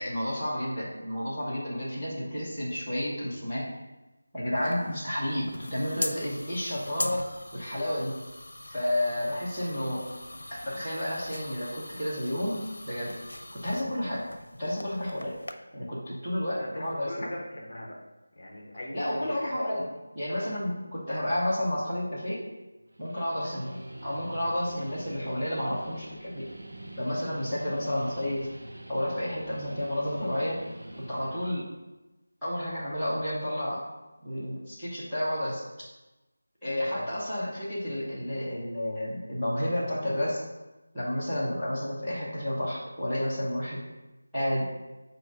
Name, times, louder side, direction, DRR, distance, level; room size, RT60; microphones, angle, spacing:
voice 1, 0.0-3.7 4.3-7.2 7.5-8.1 8.7-10.0 10.5-13.1 13.5-14.3 14.6-15.4 15.7-17.3 18.9-19.9 20.1-22.4 23.0-26.5 27.0-28.5 28.9-30.6 31.1-31.7 32.4-33.8 34.2-35.6 36.6-40.4 40.9-43.8 44.3-44.7, left 1 dB, ahead, -20 dB, 1.1 m, -31 dB
sound 1, 4.6-15.5, left 1 dB, 85° left, 0.6 m, -41 dB
voice 2, 16.6-18.0 18.4-19.9 24.9-25.0 36.9-37.1, left 1 dB, 35° left, -2 dB, 0.9 m, -39 dB
Guitar, 22.8-31.5, right 1 dB, 60° right, 0.9 m, -45 dB
7.4 x 2.6 x 4.9 m, 1.0 s
figure-of-eight pair, 180°, 0 cm